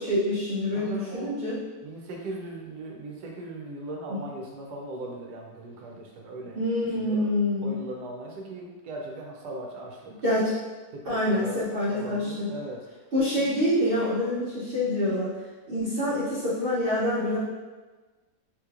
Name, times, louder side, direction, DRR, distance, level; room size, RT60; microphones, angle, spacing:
voice 1, 0.0-1.6 6.6-7.8 10.2-10.5 11.1-12.5 13.1-15.3 15.7-17.4, left 1 dB, 45° right, -10 dB, 0.7 m, -26 dB
voice 2, 0.7-1.4 1.8-6.6 6.8-7.3 7.6-10.2 10.9-12.9, right 2 dB, 75° right, 0 dB, 1.2 m, -39 dB
3.8 x 3.0 x 2.4 m, 1.3 s
omnidirectional pair, 1.8 m